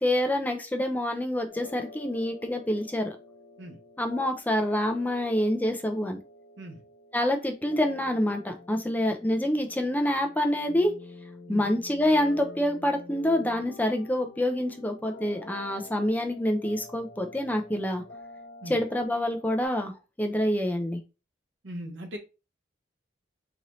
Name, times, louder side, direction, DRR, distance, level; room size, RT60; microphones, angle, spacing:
voice 1, 0.0-3.2 4.0-6.2 7.1-10.9 11.5-18.0 18.7-19.9 20.2-21.0, left 1 dB, 10° left, 4 dB, 0.5 m, -27 dB
sound 1, 1.5-19.7, left 3 dB, 65° left, 0.9 m, -48 dB
voice 2, 21.6-22.2, equal, 70° right, 2 dB, 1.0 m, -39 dB
4.0 x 2.7 x 3.0 m, 0.29 s
head